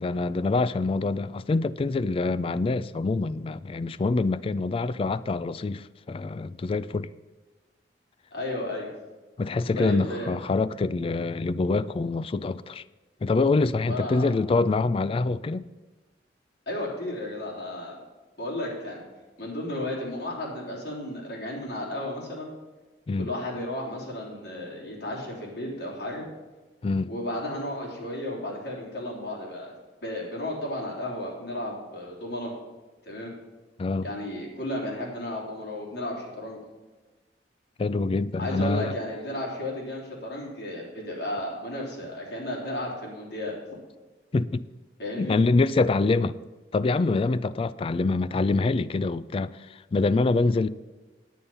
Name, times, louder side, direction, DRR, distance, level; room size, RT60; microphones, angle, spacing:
voice 1, 0.0-7.1 9.4-12.8 13.2-15.6 23.1-23.3 26.8-27.1 33.8-34.1 37.8-38.9 44.3-44.6 45.2-46.4 46.7-49.5 49.9-50.7, left 3 dB, 30° left, 0.3 m, -25 dB
voice 2, 8.3-8.9 9.7-10.3 13.9-14.3 16.7-18.0 18.4-19.0 19.4-22.5 23.2-26.3 27.1-29.7 30.0-32.5 33.1-33.3 34.0-36.6 38.4-43.6 45.0-45.4, left 1 dB, 65° left, 3.5 m, -33 dB
9.4 x 8.6 x 5.5 m
head